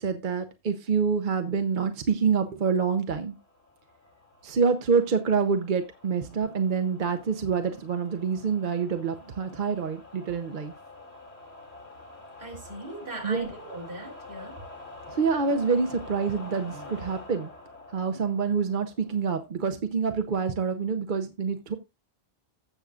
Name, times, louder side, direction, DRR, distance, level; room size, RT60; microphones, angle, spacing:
voice 1, 0.0-3.3 4.4-10.7 13.2-13.5 15.1-17.5 17.9-21.7, right 5 dB, 55° right, 0.8 m, -26 dB
sound 1, 3.0-19.4, left 2 dB, 75° left, 3.3 m, -47 dB
voice 2, 12.4-14.5, right 2 dB, 75° right, 3.6 m, -39 dB
15.5 x 6.3 x 2.4 m
omnidirectional pair, 1.1 m